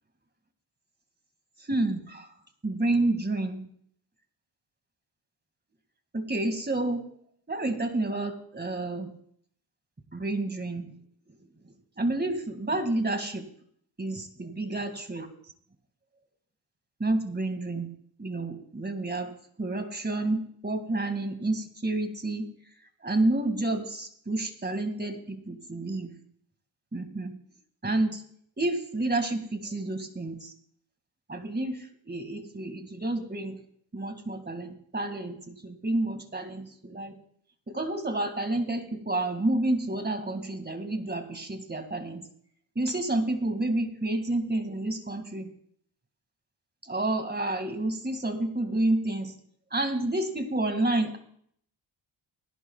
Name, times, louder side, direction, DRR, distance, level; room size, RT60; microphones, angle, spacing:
voice 1, 1.7-2.3 2.6-3.7 6.1-7.1 7.5-9.1 10.1-10.9 12.0-13.4 14.0-15.3 17.0-17.9 18.2-19.3 19.6-22.5 23.0-26.1 26.9-27.4 27.8-28.2 28.6-30.5 31.3-33.6 33.9-37.2 37.7-42.3 42.8-45.5 46.8-49.3 49.7-51.2, right 2 dB, 20° right, 7 dB, 2.2 m, -29 dB
20.0 x 11.5 x 2.4 m, 0.65 s
supercardioid pair, 55°, 48 cm